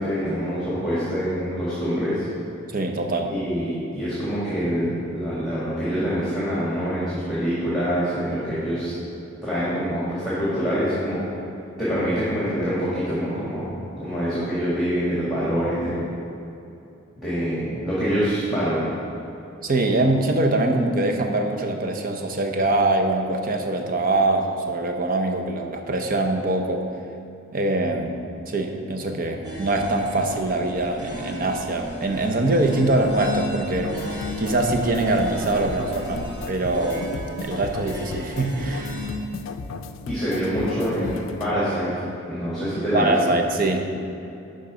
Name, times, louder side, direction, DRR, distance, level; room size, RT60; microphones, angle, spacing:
voice 1, 0.0-2.3 3.3-8.9 9.4-11.2 11.8-16.0 17.2-18.8 40.1-41.9 42.3-43.1, equal, ahead, -11 dB, 2.0 m, -25 dB
voice 2, 2.7-3.3 19.6-26.8 27.5-28.2 28.5-37.1 37.4-39.0 42.9-43.8, right 2 dB, 45° right, 4 dB, 0.7 m, -23 dB
sound 1, 29.4-39.1, equal, 20° right, 1.5 m, -34 dB
sound 2, 33.7-41.5, left 4 dB, 80° left, 0.4 m, -36 dB
11.5 x 3.9 x 5.2 m, 2.8 s
head